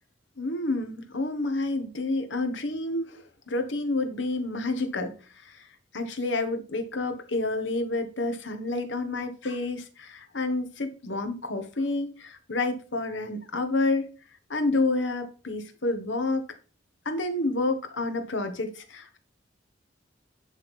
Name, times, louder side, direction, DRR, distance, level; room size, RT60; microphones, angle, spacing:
voice 1, 0.4-5.1 5.4-5.7 5.9-14.1 14.5-16.5 17.0-19.2, left 2 dB, 80° left, 1.5 m, -29 dB
10.0 x 3.7 x 5.5 m
head